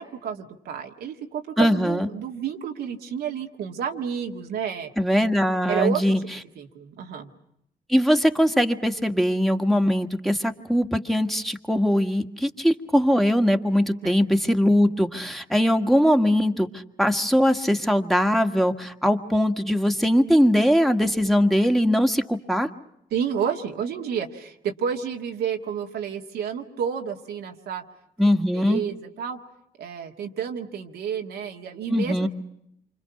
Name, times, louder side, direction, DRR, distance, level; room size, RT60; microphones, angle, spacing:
voice 1, 0.0-4.9 5.7-6.2 6.6-7.3 14.0-14.1 23.1-27.8 28.2-29.4 29.8-32.3, right 7 dB, 80° right, 3 dB, 1.8 m, -30 dB
voice 2, 1.6-2.1 5.0-6.2 7.9-22.7 28.2-28.8 31.9-32.3, equal, ahead, 5 dB, 1.7 m, -21 dB
28.0 x 25.5 x 5.8 m, 0.77 s
supercardioid pair, 50°, 16 cm